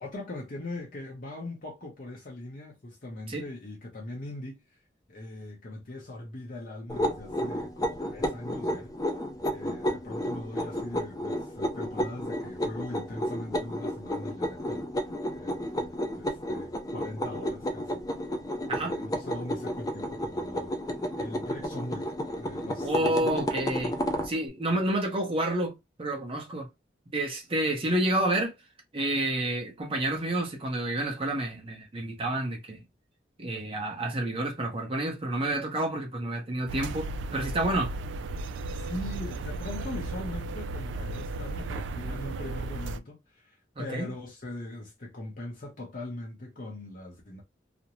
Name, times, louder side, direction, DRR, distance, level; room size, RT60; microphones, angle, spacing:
voice 1, 0.0-4.8 5.1-8.9 9.5-18.0 18.7-20.7 21.2-23.5 38.7-47.4, left 2 dB, 50° left, 0.7 m, -41 dB
sound 1, 6.9-24.3, equal, 20° left, 0.4 m, -32 dB
voice 2, 22.8-23.9 24.2-26.7 27.1-28.5 28.9-32.8 33.4-37.9 43.8-44.1, right 1 dB, 30° right, 0.7 m, -29 dB
sound 2, 36.7-43.0, right 2 dB, 85° right, 0.3 m, -35 dB
2.5 x 2.0 x 2.9 m
head